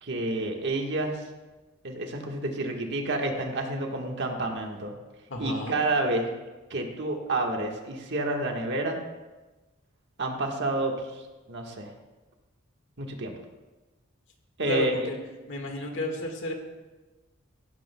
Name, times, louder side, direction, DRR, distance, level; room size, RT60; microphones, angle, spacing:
voice 1, 0.0-1.2 1.8-4.9 5.4-6.3 6.7-9.0 10.2-11.9 13.0-13.4 14.6-15.1, right 2 dB, 60° right, 2 dB, 1.5 m, -29 dB
voice 2, 5.3-5.8 14.7-15.2 15.5-16.5, left 1 dB, 65° left, 3 dB, 1.7 m, -32 dB
16.0 x 12.0 x 2.3 m, 1.2 s
head